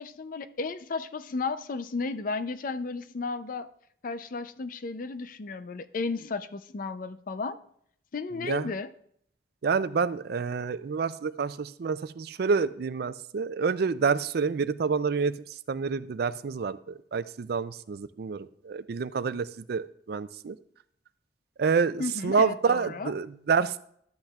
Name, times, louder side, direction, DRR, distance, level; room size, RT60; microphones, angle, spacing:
voice 1, 0.0-3.7 4.0-7.6 8.1-8.9 22.0-23.1, left 4 dB, 50° left, 13 dB, 0.5 m, -33 dB
voice 2, 8.4-8.7 9.6-15.3 15.7-20.6 21.6-23.8, right 5 dB, 65° right, 14 dB, 0.4 m, -28 dB
11.5 x 7.8 x 2.3 m, 0.66 s
head